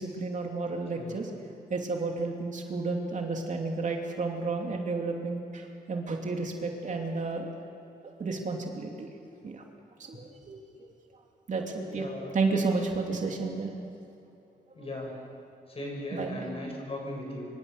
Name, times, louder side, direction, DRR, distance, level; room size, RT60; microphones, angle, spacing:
voice 1, 0.0-1.3 1.7-7.5 8.2-9.1 9.4-9.6 10.0-10.9 11.5-13.8 15.1-15.2 16.1-16.5, right 3 dB, 50° right, 1 dB, 2.8 m, -32 dB
voice 2, 1.0-1.3 11.8-12.4 14.8-15.1 15.7-17.5, left 1 dB, 35° left, 0 dB, 7.0 m, -38 dB
26.0 x 25.0 x 6.8 m, 2.8 s
wide cardioid pair, 130°, 17 cm